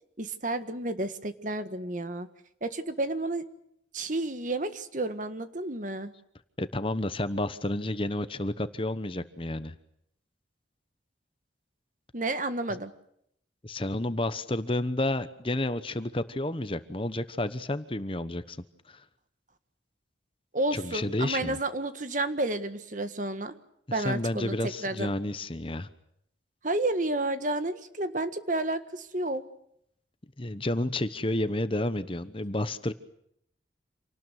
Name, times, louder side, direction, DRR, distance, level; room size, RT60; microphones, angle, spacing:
voice 1, 0.2-2.3 2.6-3.4 3.9-6.1 12.1-12.9 20.5-23.5 23.9-24.6 24.8-25.1 26.6-29.4, right 2 dB, 40° right, 10 dB, 1.6 m, -31 dB
voice 2, 6.6-9.7 13.6-18.6 18.9-19.0 20.7-21.6 23.9-25.9 30.4-32.9, left 1 dB, 30° left, 12 dB, 1.0 m, -30 dB
28.0 x 19.0 x 9.3 m, 0.73 s
head